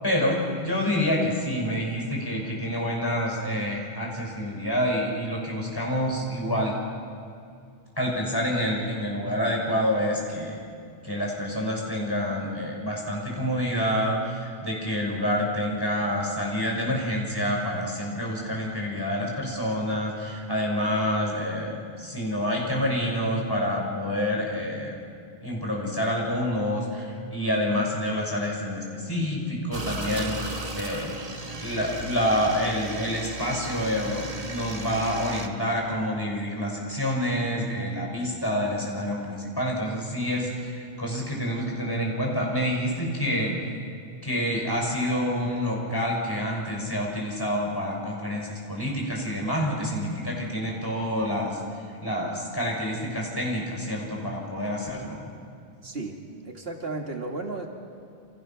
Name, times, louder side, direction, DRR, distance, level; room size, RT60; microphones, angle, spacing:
voice 1, 0.0-6.8 8.0-10.6 11.0-25.0 25.4-31.1 31.6-43.7 44.2-51.6 51.9-55.3, equal, 20° left, -2 dB, 6.0 m, -28 dB
sound 1, 29.7-35.5, right 2 dB, 35° right, 1.7 m, -35 dB
voice 2, 55.8-57.7, right 3 dB, 70° right, 2 dB, 2.4 m, -34 dB
29.5 x 27.0 x 6.0 m, 2.4 s
omnidirectional pair, 1.1 m